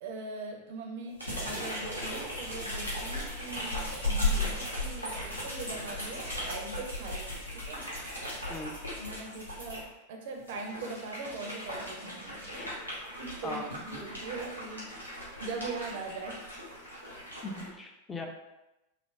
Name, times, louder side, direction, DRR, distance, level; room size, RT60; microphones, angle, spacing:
voice 1, 0.0-7.8 8.9-12.4 13.2-14.9 15.4-16.5, right 3 dB, 55° right, 2 dB, 0.5 m, -41 dB
sound 1, 1.2-9.8 10.4-17.7, left 1 dB, 85° left, 0.8 m, -36 dB
voice 2, 17.4-18.3, left 2 dB, 15° left, 3 dB, 0.4 m, -39 dB
3.1 x 2.0 x 2.4 m, 0.97 s
figure-of-eight pair, 90°, 0 cm